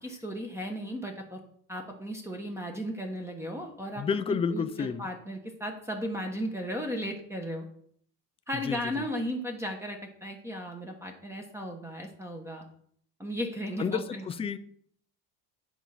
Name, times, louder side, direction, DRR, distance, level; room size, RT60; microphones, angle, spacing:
voice 1, 0.0-1.4 1.7-4.0 4.3-7.7 8.5-12.7 13.2-14.2, equal, 5° right, 3 dB, 1.1 m, -35 dB
voice 2, 4.0-5.1 8.6-9.0 13.8-14.6, left 6 dB, 15° left, 11 dB, 0.4 m, -30 dB
9.2 x 4.8 x 5.7 m, 0.62 s
cardioid pair, 140°, 36 cm